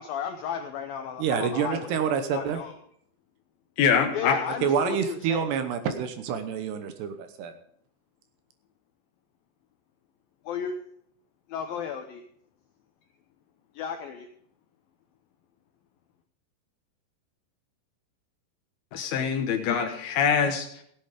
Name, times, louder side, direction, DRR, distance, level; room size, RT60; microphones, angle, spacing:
voice 1, 0.0-1.8 2.3-2.7 4.1-5.5 10.5-10.7 11.5-12.2 13.8-14.3, left 7 dB, 90° left, 6 dB, 2.0 m, -33 dB
voice 2, 1.2-2.6 4.6-7.5, right 7 dB, 75° right, 8 dB, 2.8 m, -27 dB
voice 3, 3.8-4.4 18.9-20.8, left 7 dB, 70° left, 6 dB, 2.6 m, -24 dB
16.5 x 8.8 x 5.1 m, 0.66 s
omnidirectional pair, 5.3 m